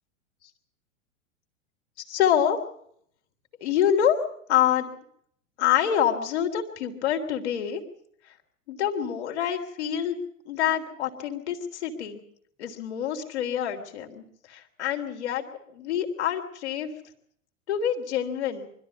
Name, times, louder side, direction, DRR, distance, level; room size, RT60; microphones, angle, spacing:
voice 1, 2.1-2.6 3.6-4.2 4.5-4.9 5.6-7.8 8.7-10.2 10.5-12.2 12.6-15.4 15.7-16.9 17.7-18.7, left 9 dB, 55° left, 4 dB, 3.5 m, -26 dB
25.0 x 13.5 x 8.5 m, 0.67 s
figure-of-eight pair, 100°, 39 cm